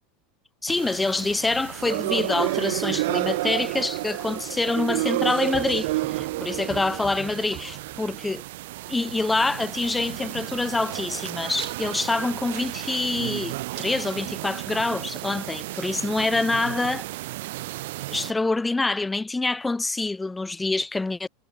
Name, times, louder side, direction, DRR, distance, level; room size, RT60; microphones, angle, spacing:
voice 1, 0.6-8.4 8.9-17.1 18.1-21.3, left 3 dB, 10° left, 0.4 m, -26 dB
sound 1, 0.7-18.3, right 18 dB, 65° right, 1.2 m, -31 dB
sound 2, 5.5-8.2, right 12 dB, 40° right, 1.5 m, -43 dB
hypercardioid pair, 85°, 0 cm